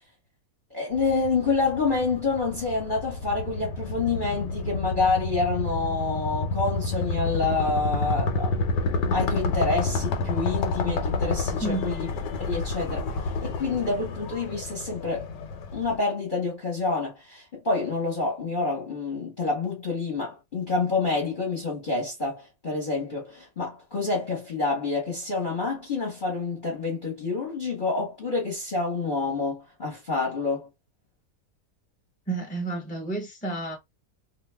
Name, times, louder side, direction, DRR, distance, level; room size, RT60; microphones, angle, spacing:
voice 1, 0.7-8.6 8.9-12.1 12.4-15.3 15.7-30.7, left 3 dB, 35° left, 1.1 m, -28 dB
sound 1, 0.9-16.0, left 3 dB, 90° left, 1.3 m, -29 dB
voice 2, 11.6-11.9 32.3-33.8, right 2 dB, 5° left, 0.8 m, -30 dB
2.8 x 2.4 x 3.3 m
omnidirectional pair, 1.8 m